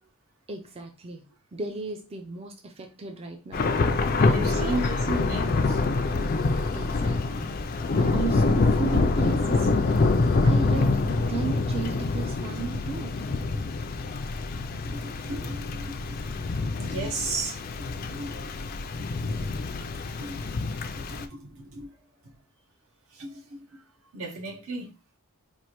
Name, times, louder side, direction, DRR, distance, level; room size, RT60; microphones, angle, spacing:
voice 1, 0.5-3.7 4.2-4.8 6.7-9.7 10.4-13.2, right 5 dB, 25° right, 0.4 m, -35 dB
Thunder / Rain, 3.5-21.2, left 3 dB, 40° left, 0.4 m, -26 dB
sound 1, 3.8-11.3, left 1 dB, 90° left, 0.8 m, -37 dB
voice 2, 4.1-5.8 13.5-13.6 14.7-20.4 20.8-21.9 23.1-23.8 24.1-24.9, right 2 dB, 75° right, 0.8 m, -36 dB
4.4 x 2.5 x 2.9 m
head